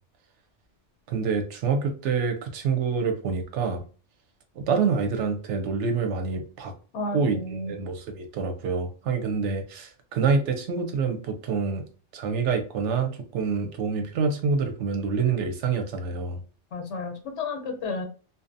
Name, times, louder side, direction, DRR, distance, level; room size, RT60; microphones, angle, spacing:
voice 1, 1.1-3.8 4.6-6.7 7.1-7.4 7.7-11.8 12.1-16.4, right 5 dB, 90° right, 6 dB, 0.9 m, -26 dB
voice 2, 6.9-7.7 16.7-18.0, left 3 dB, 85° left, 4 dB, 1.0 m, -32 dB
2.6 x 2.1 x 2.5 m, 0.37 s
omnidirectional pair, 1.2 m